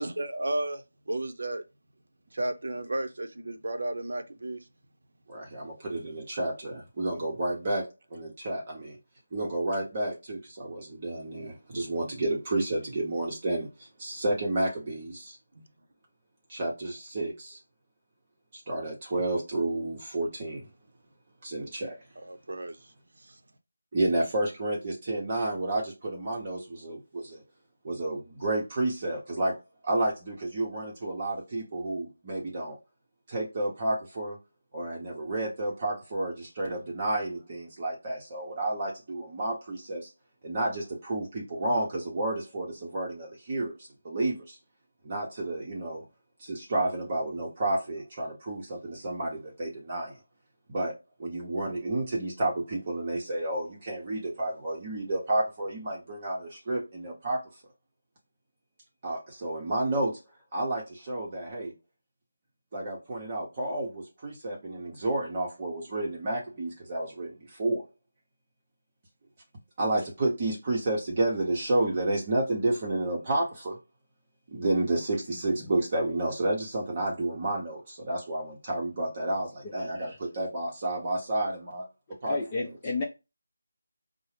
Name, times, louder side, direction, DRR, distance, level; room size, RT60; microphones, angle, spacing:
voice 1, 0.0-1.6 2.3-4.7 15.5-15.7 22.2-22.9 23.2-23.4, right 1 dB, 65° right, 0.6 m, -33 dB
voice 2, 5.3-7.9 8.1-9.0 9.3-15.4 16.5-17.6 18.5-20.6 21.4-22.0 23.9-27.4 27.8-29.6 29.8-32.8 33.3-34.4 34.7-40.1 40.4-44.6 45.0-46.0 46.4-50.2 50.7-50.9 51.2-57.4 59.0-60.2 60.5-61.7 62.7-67.8 69.8-73.8 74.5-81.9 82.2-82.4, right 2 dB, 30° right, 0.7 m, -31 dB
voice 3, 82.3-83.0, left 3 dB, 20° left, 0.5 m, -30 dB
4.5 x 2.0 x 3.2 m
figure-of-eight pair, 165°, 0 cm